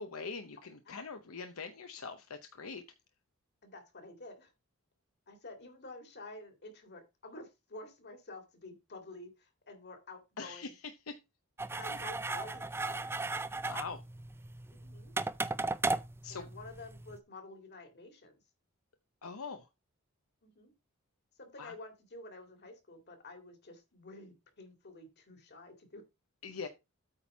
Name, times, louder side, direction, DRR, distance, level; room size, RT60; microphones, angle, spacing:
voice 1, 0.0-2.8 10.4-11.2 11.9-12.0 13.7-14.0 16.2-16.5 19.2-19.7 21.6-21.7 26.4-26.7, left 4 dB, 75° left, 8 dB, 0.8 m, -43 dB
voice 2, 3.6-4.5 5.3-10.7 11.7-13.1 14.7-15.1 16.3-18.3 20.4-20.7 21.4-26.0, left 2 dB, 50° left, 5 dB, 2.3 m, -50 dB
sound 1, 11.6-17.2, right 3 dB, 10° right, 0.4 m, -36 dB
8.8 x 4.3 x 5.4 m, 0.25 s
head